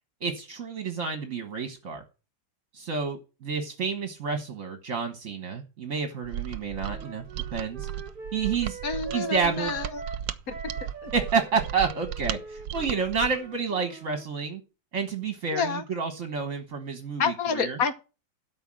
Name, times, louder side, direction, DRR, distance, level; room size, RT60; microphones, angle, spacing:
voice 1, 0.2-2.0 2.7-7.2 7.5-7.9 8.3-8.8 9.1-9.7 11.1-14.6 14.9-17.8, right 5 dB, 45° right, 1.6 m, -29 dB
Mechanisms, 6.2-13.5, right 11 dB, 75° right, 1.4 m, -36 dB
Wind instrument woodwind instrument, 6.8-14.3, right 5 dB, 30° right, 1.3 m, -42 dB
voice 2, 8.8-10.0 10.5-10.6 10.8-11.1 15.5-15.8 17.2-17.9, left 5 dB, 55° left, 1.3 m, -28 dB
12.5 x 5.0 x 7.6 m
omnidirectional pair, 2.1 m